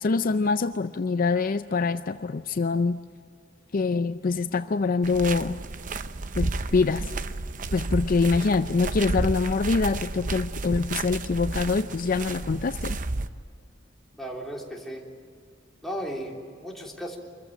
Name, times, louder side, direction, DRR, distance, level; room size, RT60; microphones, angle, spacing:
voice 1, 0.0-3.0 3.7-5.6 6.4-7.1 7.7-13.0, left 4 dB, 50° left, 11 dB, 0.5 m, -25 dB
sound 1, 5.0-13.3, right 3 dB, 45° right, 0.7 m, -31 dB
voice 2, 14.2-15.0 15.8-17.2, equal, ahead, -2 dB, 3.2 m, -35 dB
26.0 x 14.5 x 9.0 m, 2.2 s
head